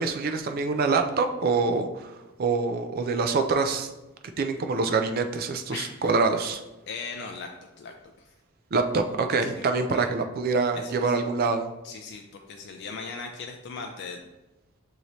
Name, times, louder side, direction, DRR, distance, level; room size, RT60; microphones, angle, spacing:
voice 1, 0.0-2.1 2.4-3.9 4.4-6.6 8.7-11.7, right 4 dB, 45° right, 6 dB, 0.4 m, -25 dB
voice 2, 6.9-8.3 9.4-10.1 10.7-11.2 11.8-14.2, left 4 dB, 50° left, 3 dB, 0.3 m, -39 dB
6.3 x 2.7 x 3.0 m, 1.0 s
head